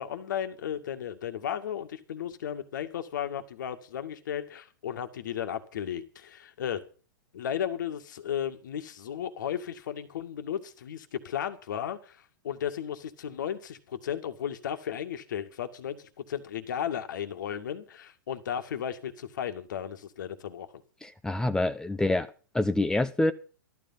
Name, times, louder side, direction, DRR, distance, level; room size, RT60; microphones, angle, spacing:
voice 1, 0.0-6.8 7.3-20.7, left 9 dB, 65° left, 2.0 m, -35 dB
voice 2, 21.0-22.3 22.5-23.3, left 2 dB, 5° left, 0.7 m, -26 dB
13.5 x 12.5 x 5.7 m
hypercardioid pair, 110°, 11 cm